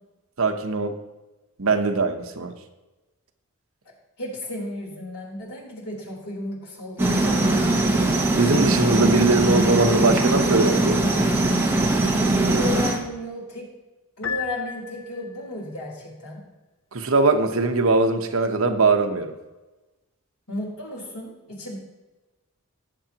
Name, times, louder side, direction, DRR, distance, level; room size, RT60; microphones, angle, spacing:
voice 1, 0.4-1.0 1.6-2.5 8.4-11.0 16.9-19.3, right 3 dB, 65° right, 6 dB, 1.0 m, -21 dB
voice 2, 4.2-7.7 12.3-13.7 14.2-16.4 20.5-21.8, left 1 dB, 90° left, -3 dB, 3.8 m, -34 dB
sound 1, 7.0-13.0, right 2 dB, 10° right, 1.0 m, -21 dB
Piano, 14.2-15.5, left 8 dB, 60° left, 0.7 m, -33 dB
18.0 x 6.9 x 2.9 m, 1.1 s
head